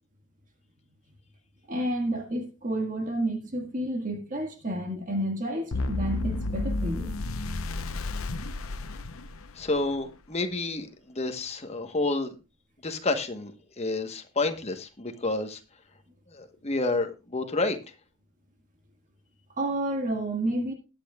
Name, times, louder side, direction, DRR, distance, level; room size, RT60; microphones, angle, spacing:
voice 1, 1.7-7.1 19.6-20.7, right 1 dB, 40° right, 1.7 m, -30 dB
sound 1, 5.7-9.8, left 2 dB, 80° left, 0.8 m, -31 dB
voice 2, 9.5-12.3 12.8-15.6 16.3-17.8, left 2 dB, 30° left, 1.2 m, -29 dB
20.0 x 8.6 x 2.3 m
head